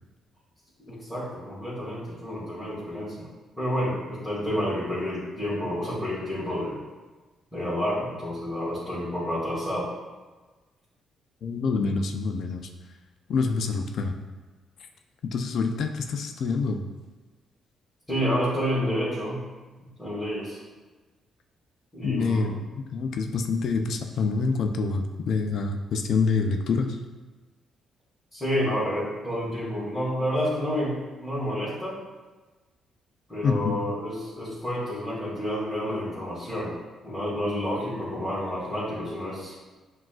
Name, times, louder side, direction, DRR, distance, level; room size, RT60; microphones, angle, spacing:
voice 1, 0.9-3.3 3.6-6.8 7.5-9.9 18.1-19.4 20.0-20.6 21.9-22.6 28.3-32.0 33.3-36.7 37.0-39.5, equal, 10° left, -12 dB, 1.5 m, -29 dB
voice 2, 11.4-12.7 13.3-14.1 15.2-16.8 22.0-27.0 33.4-33.7, left 4 dB, 65° left, 5 dB, 0.4 m, -26 dB
5.9 x 2.3 x 2.4 m, 1.3 s
cardioid pair, 90°, 0 cm